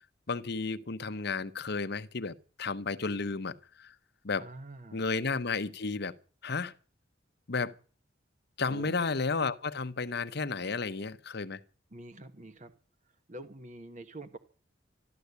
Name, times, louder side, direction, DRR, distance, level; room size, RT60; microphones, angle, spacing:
voice 1, 0.3-3.9 4.2-4.5 4.9-6.1 6.4-6.7 7.5-7.7 8.6-11.6, left 4 dB, 60° left, 1.0 m, -33 dB
voice 2, 4.4-5.1 8.7-9.0 11.9-12.7 13.3-14.4, right 2 dB, 40° right, 1.2 m, -46 dB
13.5 x 13.0 x 8.2 m
head